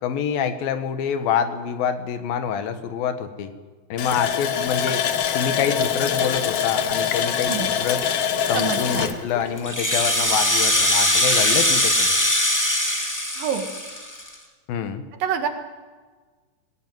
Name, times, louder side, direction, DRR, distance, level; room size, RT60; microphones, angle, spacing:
voice 1, 0.0-3.5 3.9-5.0 5.3-8.1 8.5-12.1 14.7-15.0, left 7 dB, 80° left, 10 dB, 3.2 m, -26 dB
Water tap faucet, 4.0-10.5 10.8-10.9 11.4-11.5, left 8 dB, 60° left, 1.7 m, -24 dB
voice 2, 8.5-9.1 13.4-13.6 15.2-15.5, right 8 dB, 70° right, 6 dB, 3.4 m, -26 dB
Rattle (instrument), 9.6-14.3, left 1 dB, 5° left, 1.6 m, -21 dB
20.5 x 18.0 x 9.2 m, 1.4 s
omnidirectional pair, 4.1 m